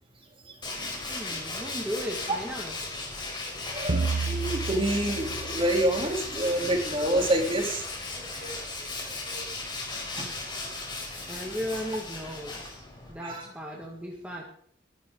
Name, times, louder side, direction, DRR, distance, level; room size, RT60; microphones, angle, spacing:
voice 1, 0.5-0.9 3.4-7.9 8.3-8.6 9.0-9.5 10.2-10.3 13.2-13.5, right 1 dB, 30° right, 1 dB, 3.5 m, -28 dB
Tools, 0.6-13.1, left 3 dB, 25° left, 4.4 m, -36 dB
voice 2, 1.0-2.8 11.3-14.4, equal, 5° right, -2 dB, 2.0 m, -36 dB
sound 1, 3.9-6.6, right 4 dB, 65° right, 0.8 m, -32 dB
22.5 x 11.5 x 4.0 m, 0.63 s
head